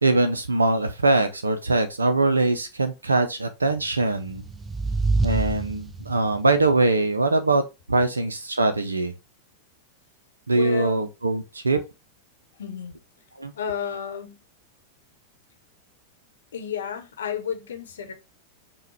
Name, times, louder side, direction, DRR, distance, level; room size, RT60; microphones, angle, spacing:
voice 1, 0.0-4.4 5.2-7.6 7.9-9.1 10.5-11.8 13.4-13.5, right 2 dB, 80° right, 0.5 m, -22 dB
sound 1, 4.1-6.4, right 3 dB, 15° right, 0.4 m, -26 dB
voice 2, 10.5-11.1 12.6-12.9 13.5-14.4 16.5-18.1, left 8 dB, 65° left, 0.9 m, -31 dB
5.5 x 2.2 x 3.2 m
figure-of-eight pair, 90°, 0 cm